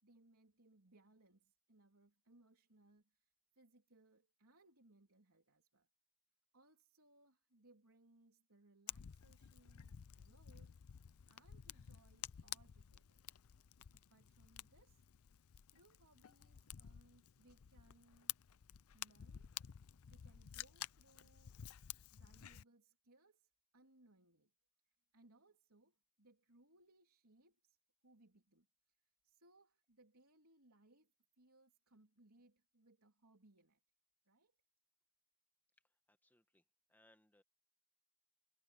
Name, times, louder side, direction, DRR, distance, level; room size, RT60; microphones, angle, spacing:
voice 1, 0.0-5.9 6.5-10.8 11.3-13.2 13.9-15.1 15.7-18.3 18.9-19.5 20.1-21.6 22.1-24.5 24.8-27.8 28.0-33.8 34.3-34.6, right 2 dB, 85° right, 3.5 m, -70 dB
Fire, 8.9-22.6, left 11 dB, 80° left, 0.5 m, -52 dB
voice 2, 35.8-36.6 36.9-37.4, left 1 dB, 10° left, 1.4 m, -72 dB
head